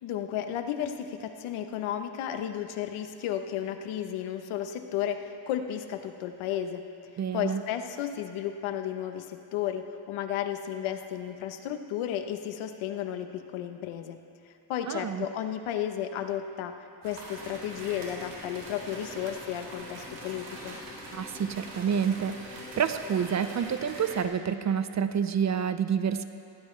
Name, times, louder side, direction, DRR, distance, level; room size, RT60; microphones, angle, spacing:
voice 1, 0.0-6.8 7.3-14.2 14.7-16.7 17.0-20.8, left 10 dB, 80° left, 7 dB, 1.1 m, -33 dB
voice 2, 7.2-7.6 14.9-15.3 21.1-26.2, right 7 dB, 35° right, 11 dB, 0.6 m, -28 dB
sound 1, 17.0-24.2, right 2 dB, 75° right, 4.3 m, -44 dB
sound 2, 17.4-24.2, left 4 dB, 20° left, 1.2 m, -47 dB
19.0 x 16.5 x 3.3 m, 2.6 s
cardioid pair, 105°, 48 cm